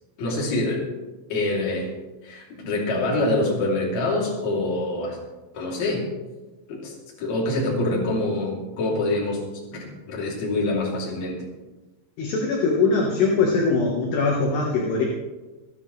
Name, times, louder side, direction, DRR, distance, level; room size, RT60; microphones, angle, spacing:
voice 1, 0.2-0.9 1.3-1.9 2.2-5.2 5.5-6.0 6.7-9.4 9.7-11.4, left 2 dB, 40° left, -3 dB, 3.8 m, -25 dB
voice 2, 12.2-15.0, left 4 dB, 65° left, -1 dB, 3.2 m, -22 dB
27.0 x 9.7 x 3.3 m, 1.2 s
omnidirectional pair, 5.9 m